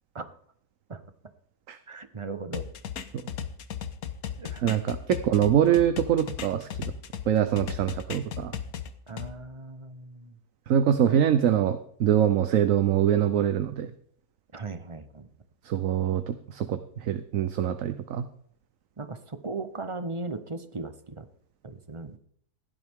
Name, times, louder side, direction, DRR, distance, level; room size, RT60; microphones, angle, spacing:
voice 1, 1.9-2.7 4.4-4.6 9.1-10.4 11.0-11.2 14.5-15.3 19.0-21.2 21.6-22.2, right 3 dB, 25° right, 11 dB, 0.7 m, -37 dB
sound 1, 2.5-7.3 7.6-9.3, left 8 dB, 70° left, 1.4 m, -36 dB
voice 2, 4.6-6.7 7.3-8.6 10.7-13.9 15.6-18.3, right 9 dB, 65° right, 10 dB, 1.1 m, -24 dB
16.0 x 11.5 x 3.6 m, 0.63 s
omnidirectional pair, 1.6 m